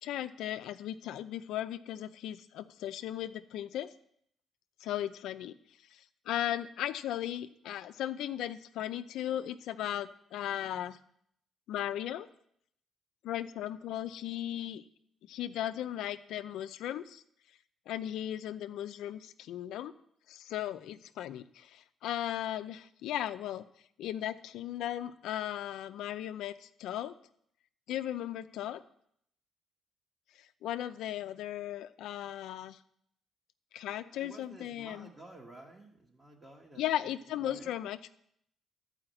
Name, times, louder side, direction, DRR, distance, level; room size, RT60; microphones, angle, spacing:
voice 1, 0.0-3.9 4.8-5.6 5.9-11.0 11.7-12.3 13.2-14.8 15.3-17.2 17.9-19.9 20.3-23.7 24.0-27.1 27.9-28.8 30.4-32.8 33.7-35.1 36.8-38.1, left 12 dB, 85° left, 11 dB, 0.5 m, -37 dB
voice 2, 34.1-36.8 37.4-37.7, right 2 dB, 25° right, -2 dB, 1.7 m, -52 dB
11.0 x 4.9 x 7.7 m, 0.70 s
cardioid pair, 90°, 0 cm